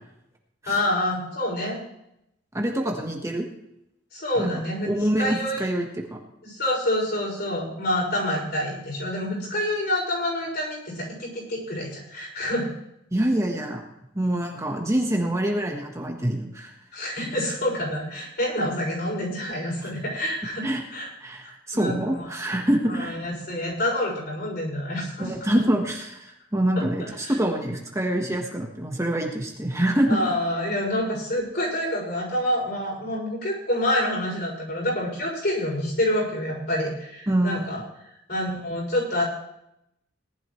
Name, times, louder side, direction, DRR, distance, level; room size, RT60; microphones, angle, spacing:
voice 1, 0.7-1.8 4.1-5.7 6.4-12.7 16.9-20.6 20.9-21.1 21.4-22.3 22.9-25.3 27.2-27.4 30.1-37.8 38.3-39.2, left 1 dB, 55° left, -3 dB, 6.6 m, -27 dB
voice 2, 2.5-3.5 4.4-4.5 4.8-6.2 13.1-13.8 14.1-16.7 20.6-20.8 21.2-23.2 25.2-30.2 37.3-37.7, right 1 dB, 15° right, 1 dB, 1.4 m, -25 dB
18.5 x 11.5 x 3.2 m, 0.81 s
head